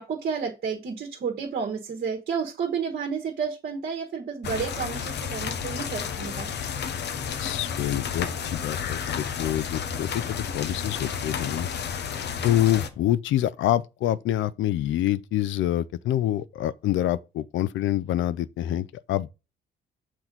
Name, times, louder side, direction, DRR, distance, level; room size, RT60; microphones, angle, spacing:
voice 1, 0.0-6.5, right 6 dB, 55° right, 1.3 m, -31 dB
sound 1, 4.4-12.9, left 7 dB, 60° left, 0.8 m, -31 dB
voice 2, 7.4-8.3 8.6-11.7 12.4-19.3, left 12 dB, 75° left, 0.4 m, -26 dB
6.1 x 4.4 x 3.9 m
cardioid pair, 90°, 20 cm